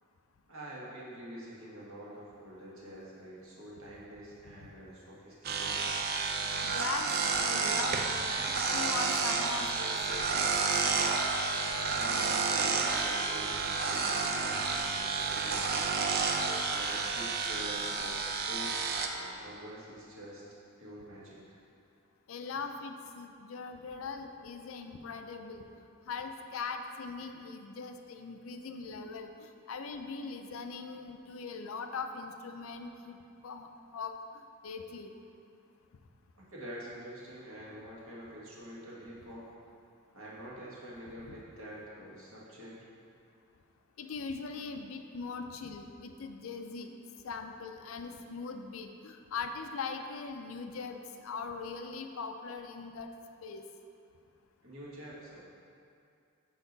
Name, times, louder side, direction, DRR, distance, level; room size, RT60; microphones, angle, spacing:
voice 1, 0.5-5.9 11.9-18.8 19.1-20.4 20.8-21.6 36.5-39.5 40.1-42.8 54.6-55.4, equal, 85° right, -6 dB, 1.5 m, -46 dB
sound 1, 5.4-19.1, right 4 dB, 45° right, 0.4 m, -30 dB
voice 2, 6.6-10.6 16.5-16.6 22.3-25.6 26.1-33.2 33.4-35.1 41.3-41.4 44.0-46.9 47.2-53.1 53.4-53.7, left 4 dB, 80° left, 6 dB, 0.4 m, -41 dB
sound 2, 8.8-14.7, left 1 dB, 20° left, 0.4 m, -46 dB
6.4 x 4.7 x 3.9 m, 2.5 s
head